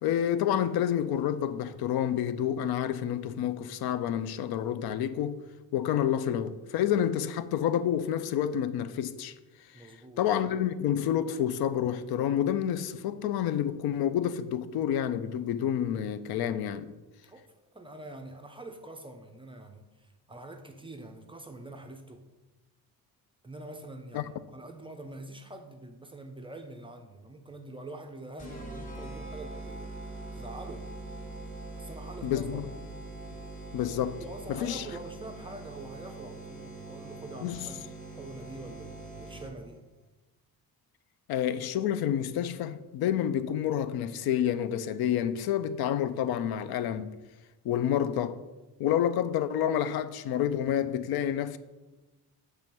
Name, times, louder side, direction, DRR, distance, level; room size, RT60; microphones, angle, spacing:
voice 1, 0.0-5.4 5.7-9.3 9.7-9.9 10.2-16.9 24.1-24.2 32.2-32.6 33.7-34.2 34.5-34.8 37.4-37.7 41.3-47.1 47.6-48.4 48.8-51.6, left 10 dB, 75° left, 0.5 m, -29 dB
voice 2, 9.7-10.2 17.2-17.5 17.7-22.3 23.4-29.9 30.3-30.9 31.8-32.6 34.2-39.8, right 2 dB, 15° right, 0.4 m, -45 dB
sound 1, 28.4-39.8, right 2 dB, 20° left, 1.1 m, -43 dB
6.9 x 3.3 x 5.9 m
cardioid pair, 155°, 37 cm